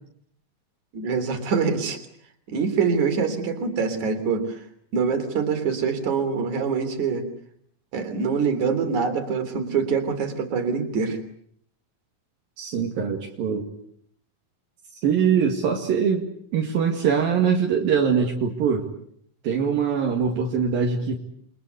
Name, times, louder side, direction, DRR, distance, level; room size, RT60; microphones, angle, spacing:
voice 1, 0.9-2.0 2.5-4.6 4.9-7.3 7.9-11.2, right 5 dB, 55° right, 8 dB, 4.7 m, -24 dB
voice 2, 12.6-13.7 15.0-16.3 16.5-18.9 19.4-21.2, right 6 dB, 70° right, 1 dB, 4.0 m, -22 dB
29.5 x 24.0 x 8.3 m, 0.66 s
omnidirectional pair, 4.3 m